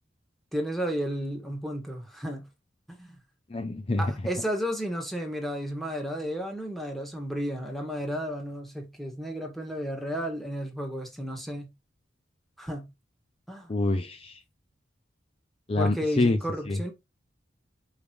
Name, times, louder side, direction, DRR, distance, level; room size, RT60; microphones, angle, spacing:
voice 1, 0.5-2.5 2.9-3.1 4.0-11.7 12.6-12.9 13.5-13.7 15.8-16.9, equal, ahead, 1.9 m, -33 dB
voice 2, 3.5-4.1 13.7-14.4 15.7-16.4 16.7-16.8, left 2 dB, 30° left, 0.5 m, -26 dB
6.5 x 5.2 x 3.2 m
head